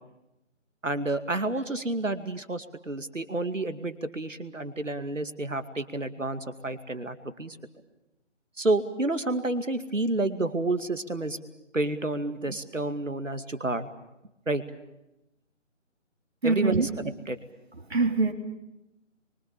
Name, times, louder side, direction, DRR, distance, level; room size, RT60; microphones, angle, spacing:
voice 1, 0.8-7.6 8.6-11.4 11.7-13.9 14.5-14.6 16.4-16.8 17.3-17.4, right 2 dB, 80° right, 9 dB, 2.4 m, -29 dB
voice 2, 16.4-16.9 17.7-18.3, right 3 dB, 55° right, 4 dB, 3.6 m, -24 dB
25.5 x 24.0 x 7.0 m, 0.91 s
figure-of-eight pair, 155°, 38 cm